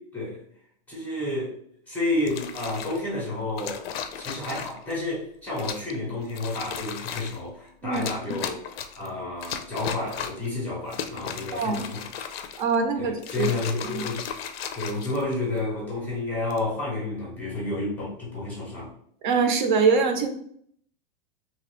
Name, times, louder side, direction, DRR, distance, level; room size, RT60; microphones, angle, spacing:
voice 1, 0.9-1.5 1.9-3.9 4.2-8.6 9.0-12.1 13.0-14.2 14.7-18.9, left 2 dB, 5° left, -5 dB, 0.5 m, -30 dB
sound 1, 2.2-3.0 3.6-4.9 5.6-6.0 6.3-7.4 7.9-9.1 9.4-10.5 10.9-12.8 13.2-15.6 16.3-16.7, left 7 dB, 90° left, 0.5 m, -36 dB
voice 2, 11.5-11.8 12.6-13.5 19.2-20.3, right 5 dB, 55° right, 6 dB, 0.5 m, -23 dB
2.9 x 2.3 x 3.0 m, 0.65 s
supercardioid pair, 170°, 29 cm